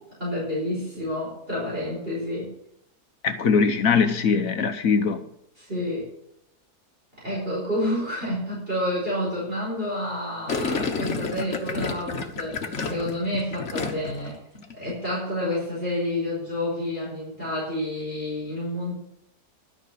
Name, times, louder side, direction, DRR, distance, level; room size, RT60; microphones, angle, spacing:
voice 1, 0.2-2.5 5.6-6.1 7.2-14.4 14.7-18.9, left 1 dB, 35° right, -6 dB, 5.2 m, -29 dB
voice 2, 3.2-5.2, left 5 dB, 65° left, 8 dB, 1.3 m, -21 dB
Gurgling, 10.5-14.3 14.5-14.9, left 4 dB, 50° left, 1.6 m, -30 dB
12.5 x 6.0 x 8.5 m, 0.78 s
omnidirectional pair, 1.6 m